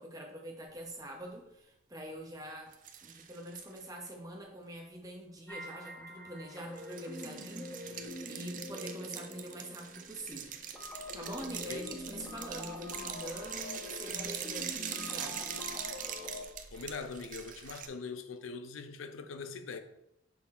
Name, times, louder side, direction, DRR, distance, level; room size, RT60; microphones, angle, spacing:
voice 1, 0.0-2.7 3.0-10.6 11.1-15.5, right 1 dB, 15° right, 0.9 m, -45 dB
sound 1, 2.7-4.1 6.8-17.9, right 8 dB, 40° right, 0.5 m, -43 dB
sound 2, 5.5-16.4, left 2 dB, 10° left, 1.0 m, -45 dB
voice 2, 16.7-19.8, left 4 dB, 80° left, 0.6 m, -42 dB
5.9 x 4.2 x 4.3 m
head